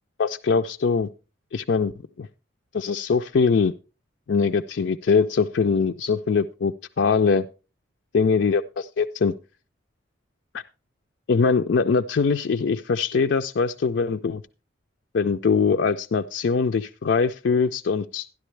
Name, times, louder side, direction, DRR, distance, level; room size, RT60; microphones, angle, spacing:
voice 1, 0.2-1.1 1.5-1.9 2.2-2.3 2.7-3.7 4.3-7.5 8.1-9.3 10.5-10.6 11.3-14.4 15.1-18.3, left 5 dB, 65° left, 6 dB, 0.4 m, -22 dB
13.0 x 10.5 x 3.2 m, 0.32 s
head